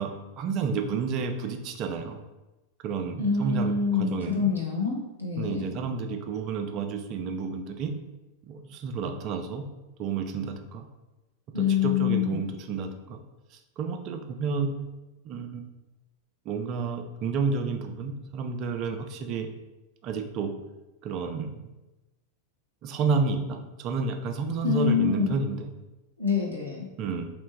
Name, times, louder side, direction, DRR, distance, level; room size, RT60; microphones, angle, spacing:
voice 1, 0.0-2.2 2.8-4.5 5.4-7.9 8.4-9.6 10.0-10.9 11.6-13.2 13.5-14.7 15.2-15.6 16.5-19.5 20.0-20.5 21.0-21.6 22.8-25.7 27.0-27.3, right 5 dB, 40° right, 6 dB, 0.4 m, -30 dB
voice 2, 3.2-5.7 11.5-12.4 24.6-25.3 26.2-26.9, left 6 dB, 90° left, -4 dB, 1.0 m, -26 dB
3.2 x 2.9 x 3.3 m, 1.0 s
figure-of-eight pair, 90°, 0 cm